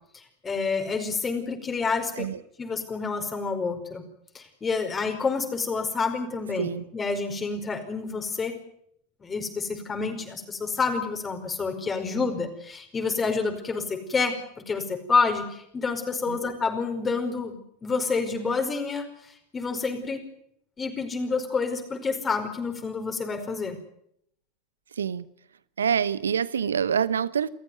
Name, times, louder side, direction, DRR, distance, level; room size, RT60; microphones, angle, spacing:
voice 1, 0.1-2.3 2.6-4.0 4.4-8.5 9.2-14.4 14.7-17.5 17.8-19.1 19.5-20.2 20.8-23.8, left 4 dB, 20° left, 5.0 m, -28 dB
voice 2, 24.9-25.3 25.8-27.5, right 7 dB, 75° right, 1.0 m, -26 dB
28.5 x 14.5 x 9.5 m
figure-of-eight pair, 80°, 0 cm